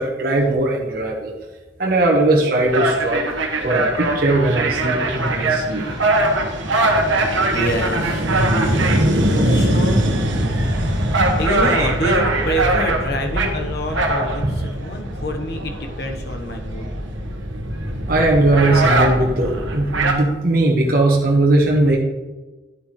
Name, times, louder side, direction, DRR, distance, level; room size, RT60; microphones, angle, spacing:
voice 1, 0.0-1.3 1.8-3.2 3.6-5.8 8.9-9.5 14.4-14.6 18.1-22.0, right 2 dB, 50° right, -2 dB, 1.3 m, -19 dB
sound 1, 2.6-20.1, right 1 dB, 90° right, 1.3 m, -21 dB
voice 2, 7.5-8.3 9.4-10.1 11.1-16.9, equal, 55° left, 3 dB, 1.1 m, -26 dB
10.5 x 8.2 x 3.2 m, 1.2 s
head